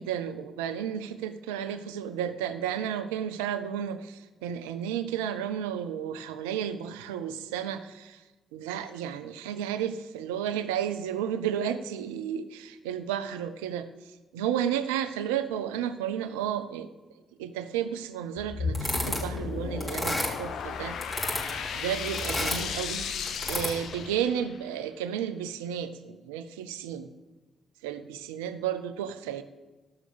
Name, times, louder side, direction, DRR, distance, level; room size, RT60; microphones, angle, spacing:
voice 1, 0.0-8.2 8.5-13.9 14.3-16.9 17.4-21.0 21.7-23.1 23.5-27.1 27.8-29.4, right 9 dB, 90° right, 12 dB, 0.6 m, -32 dB
sound 1, 18.4-24.7, left 5 dB, 70° left, 0.8 m, -35 dB
sound 2, 18.7-19.4 19.8-20.6 21.0-21.7 22.1-22.8 23.3-24.0, left 1 dB, 25° left, 4.5 m, -31 dB
13.5 x 6.3 x 6.9 m, 1.2 s
hypercardioid pair, 45°, 0 cm